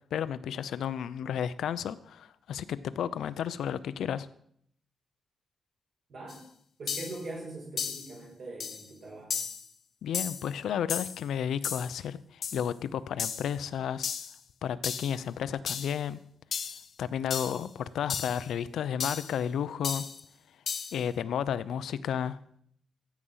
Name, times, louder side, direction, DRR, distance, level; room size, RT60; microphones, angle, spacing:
voice 1, 0.1-4.3 10.0-14.1 14.6-16.2 17.0-20.0 20.9-22.4, left 8 dB, 80° left, 14 dB, 0.6 m, -32 dB
voice 2, 6.1-6.4 6.8-9.3, right 2 dB, 50° right, -2 dB, 5.8 m, -42 dB
sound 1, 6.3-6.4 6.9-7.2 7.8-8.1 8.6-8.9 9.3-9.7 10.1-10.5 10.9-11.2 11.6-11.9 12.4-12.7 13.2-13.5 14.0-14.4 14.8-15.2 15.7-16.0 16.5-16.8 17.3-17.6 18.1-18.4 19.0-19.3 19.8-20.2 20.7-21.0, left 7 dB, 50° left, 0.8 m, -34 dB
15.0 x 8.4 x 5.6 m, 0.67 s
wide cardioid pair, 175°, 0 cm